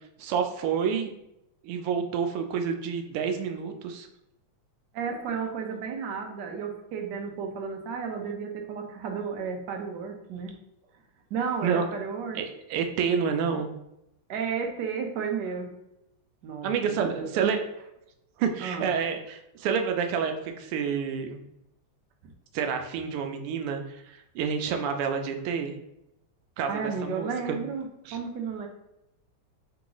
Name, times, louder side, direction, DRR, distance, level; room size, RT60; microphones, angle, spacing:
voice 1, 0.2-1.1 1.6-4.1 11.6-11.9 12.3-13.7 16.6-17.6 18.4-21.4 22.5-25.7 26.6-27.6 28.1-28.2, right 6 dB, 90° right, 6 dB, 1.5 m, -29 dB
voice 2, 4.9-10.5 11.3-12.4 14.3-15.7 16.4-17.3 18.6-18.9 22.2-22.3 26.7-28.7, right 6 dB, 65° right, 3 dB, 1.1 m, -33 dB
3.7 x 2.9 x 3.8 m, 0.85 s
omnidirectional pair, 2.4 m